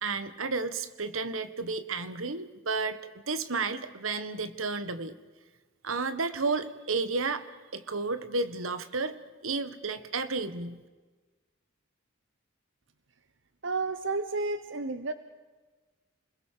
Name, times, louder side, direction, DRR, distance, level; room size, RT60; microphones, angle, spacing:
voice 1, 0.0-3.0 3.3-5.2 5.8-7.5 7.7-10.8, right 4 dB, 85° right, 13 dB, 1.6 m, -32 dB
voice 2, 13.6-15.1, right 3 dB, 65° right, 11 dB, 1.1 m, -31 dB
29.0 x 21.5 x 6.8 m, 1.3 s
head